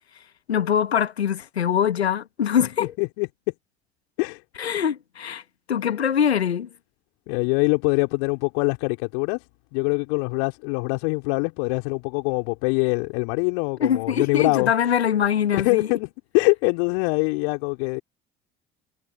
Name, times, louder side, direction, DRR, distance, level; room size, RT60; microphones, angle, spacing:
voice 1, 0.5-2.9 4.6-5.4 5.7-6.7 13.8-15.9, left 8 dB, 85° left, 1.5 m, -23 dB
voice 2, 2.8-3.3 4.2-4.4 7.3-9.4 9.7-14.9 15.5-18.0, left 39 dB, 65° left, 4.1 m, -24 dB
figure-of-eight pair, 55°, 31 cm